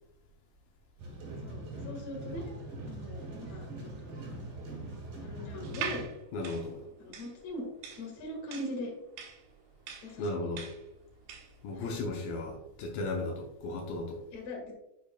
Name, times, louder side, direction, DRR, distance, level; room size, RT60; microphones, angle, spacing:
sound 1, 1.0-6.0, right 1 dB, 50° right, 2.5 m, -42 dB
voice 1, 1.4-2.5 2.9-3.7 4.0-4.1 5.2-6.0 7.0-7.7 8.0-8.9 10.0-10.5 11.7-12.0 14.3-14.7, left 1 dB, 55° left, 1 dB, 2.0 m, -41 dB
sound 2, 5.6-11.6, right 7 dB, 80° right, 3.1 m, -42 dB
voice 2, 6.3-6.8 10.2-10.7 11.6-14.2, left 2 dB, 90° left, 1 dB, 2.0 m, -35 dB
8.2 x 6.4 x 2.2 m, 0.89 s
omnidirectional pair, 5.2 m